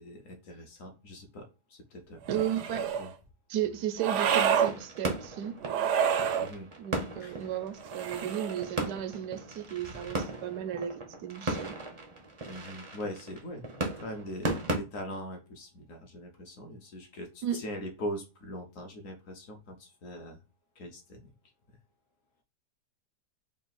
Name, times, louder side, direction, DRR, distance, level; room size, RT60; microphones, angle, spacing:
voice 1, 0.0-3.1 6.4-6.7 7.2-7.5 9.8-10.2 12.5-20.4 20.8-21.3, equal, 60° left, 1.1 m, -42 dB
sound 1, 2.3-3.1 4.0-4.7 5.6-6.5 7.8-8.7, right 8 dB, 70° right, 0.7 m, -28 dB
voice 2, 2.3-2.9 3.5-5.6 6.8-11.8 17.4-17.6, right 10 dB, 90° right, 1.2 m, -34 dB
sound 2, 4.1-14.8, right 2 dB, 50° right, 0.3 m, -37 dB
3.7 x 2.5 x 3.9 m
omnidirectional pair, 1.7 m